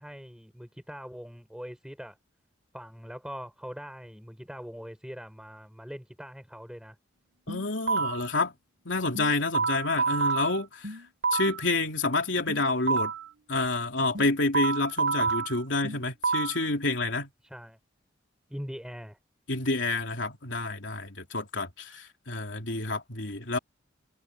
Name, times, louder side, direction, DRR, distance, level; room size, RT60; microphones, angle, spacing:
voice 1, 0.0-2.2 2.7-7.0 17.4-17.8 18.5-19.2, equal, 5° right, 4.0 m, -42 dB
voice 2, 7.5-8.5 8.8-11.0 11.3-13.1 13.5-17.3 19.5-23.6, left 2 dB, 75° left, 3.1 m, -28 dB
sound 1, 7.5-8.3 9.1-11.7 12.5-13.3 14.1-16.7, right 5 dB, 60° right, 4.0 m, -29 dB
head